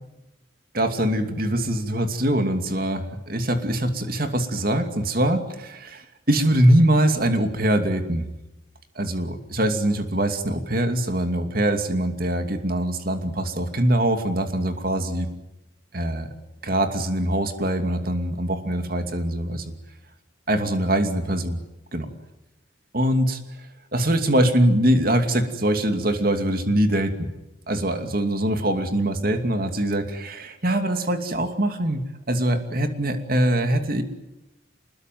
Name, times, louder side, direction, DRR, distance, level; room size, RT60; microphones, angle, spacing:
voice 1, 0.7-8.3 9.0-15.3 15.9-16.3 16.6-19.7 20.5-21.6 21.9-22.1 22.9-23.7 23.9-27.3 27.7-34.0, right 1 dB, 45° right, 7 dB, 2.7 m, -23 dB
28.0 x 21.0 x 9.5 m, 0.95 s
head